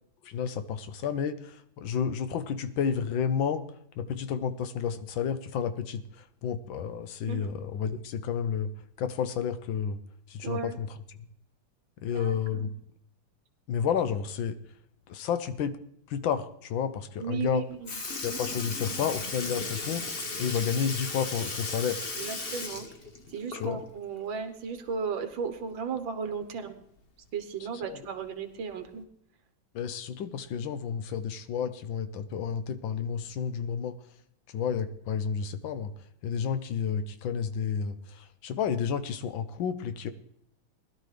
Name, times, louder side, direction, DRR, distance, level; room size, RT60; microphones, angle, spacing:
voice 1, 0.2-3.6 4.0-8.7 9.0-10.0 10.3-11.0 12.0-12.7 13.7-14.6 15.1-15.8 16.1-17.7 18.2-22.0 23.5-23.8 27.7-28.0 29.7-34.0 34.5-35.9 36.2-40.1, left 7 dB, 75° left, 11 dB, 1.5 m, -31 dB
voice 2, 10.4-10.8 12.1-12.6 17.2-17.9 22.2-22.9 23.3-26.8 27.3-29.0, right 6 dB, 70° right, 7 dB, 1.8 m, -35 dB
Sink (filling or washing) / Liquid, 17.4-17.5 17.9-24.0 24.3-24.4 26.0-26.1 27.0-27.1 27.9-28.1 28.9-29.0, left 3 dB, 35° left, 1.2 m, -36 dB
20.5 x 12.0 x 3.3 m, 0.73 s
omnidirectional pair, 2.2 m